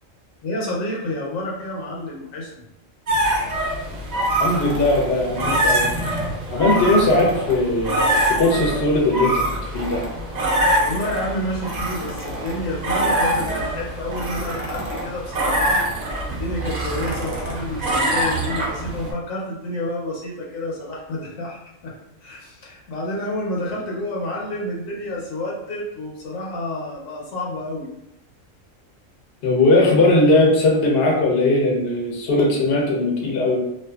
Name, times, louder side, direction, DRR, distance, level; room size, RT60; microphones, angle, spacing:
voice 1, 0.4-2.6 10.8-15.9 16.3-21.9 22.2-27.9, left 1 dB, 75° left, -3 dB, 1.1 m, -29 dB
sound 1, 3.1-19.1, right 1 dB, 65° right, 0.4 m, -24 dB
voice 2, 4.4-5.8 6.5-10.0 29.4-33.6, left 2 dB, 55° left, -2 dB, 0.8 m, -19 dB
2.5 x 2.3 x 2.3 m, 0.81 s
omnidirectional pair, 1.4 m